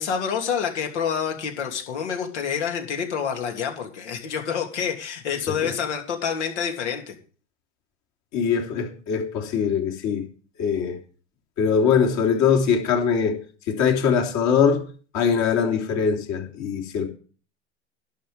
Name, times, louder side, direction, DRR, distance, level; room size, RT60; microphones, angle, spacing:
voice 1, 0.0-7.1, left 7 dB, 75° left, 3.0 m, -27 dB
voice 2, 8.3-10.2 10.6-11.0 11.6-13.4 13.7-14.8 15.1-17.1, left 6 dB, 50° left, 3.3 m, -22 dB
11.5 x 6.1 x 8.1 m
hypercardioid pair, 95°, 34 cm